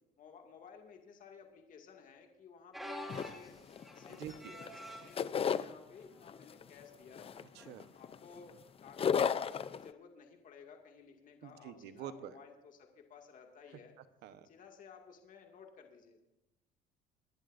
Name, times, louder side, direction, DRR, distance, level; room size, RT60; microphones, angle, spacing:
voice 1, 0.2-3.6 3.9-7.4 7.9-8.5 8.8-13.9 14.4-16.2, left 6 dB, 50° left, 3 dB, 2.3 m, -56 dB
sound 1, 2.7-5.2 5.9-6.2 6.5-6.6 7.6-7.8 9.4-9.5, equal, ahead, 2.8 m, -47 dB
sound 2, 3.1-4.3 4.6-5.7 6.3-6.6 7.2-8.5 8.8-9.9, left 7 dB, 35° left, 0.6 m, -33 dB
voice 2, 4.1-4.5 7.5-7.9 11.4-12.4 14.0-14.5, right 10 dB, 80° right, 11 dB, 1.1 m, -47 dB
25.0 x 11.5 x 2.6 m, 0.96 s
cardioid pair, 110°, 17 cm